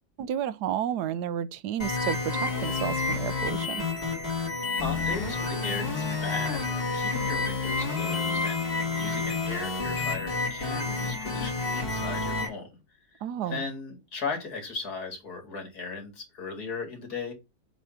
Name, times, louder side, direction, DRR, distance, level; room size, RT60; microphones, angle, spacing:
voice 1, 0.2-3.8 13.2-13.6, right 10 dB, 85° right, 1.2 m, -31 dB
sound 1, 1.8-12.5, left 3 dB, 35° left, 2.3 m, -29 dB
voice 2, 4.8-6.6 6.9-12.8 13.1-17.3, left 4 dB, 70° left, 2.8 m, -37 dB
7.5 x 3.2 x 5.6 m
omnidirectional pair, 1.7 m